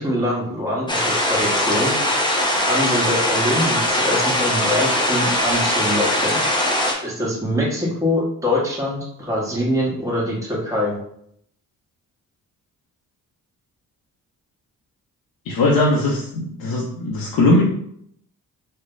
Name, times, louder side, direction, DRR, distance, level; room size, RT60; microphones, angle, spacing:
voice 1, 0.0-1.9 2.6-6.4 7.0-11.0, left 1 dB, 10° right, -5 dB, 1.3 m, -23 dB
sound 1, 0.9-6.9, left 1 dB, 10° left, 0.9 m, -21 dB
voice 2, 15.5-17.6, left 2 dB, 75° left, -3 dB, 0.7 m, -19 dB
3.2 x 2.2 x 3.8 m, 0.70 s
cardioid pair, 60°, 36 cm